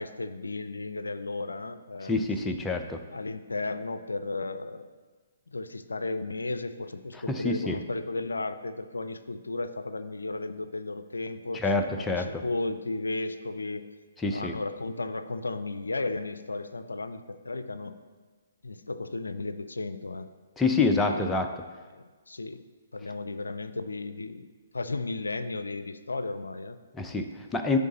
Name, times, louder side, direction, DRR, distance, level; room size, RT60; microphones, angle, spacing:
voice 1, 0.0-2.1 3.1-4.9 5.5-13.9 14.3-18.0 18.6-20.3 20.8-21.3 21.9-22.6 22.9-24.5 24.7-26.8, left 3 dB, 80° left, 11 dB, 0.4 m, -34 dB
voice 2, 2.1-3.0 7.3-7.8 11.5-12.4 14.2-14.5 20.6-21.5 26.9-27.8, left 3 dB, 10° left, 4 dB, 0.4 m, -27 dB
10.5 x 3.6 x 3.9 m, 1.4 s
figure-of-eight pair, 130°, 0 cm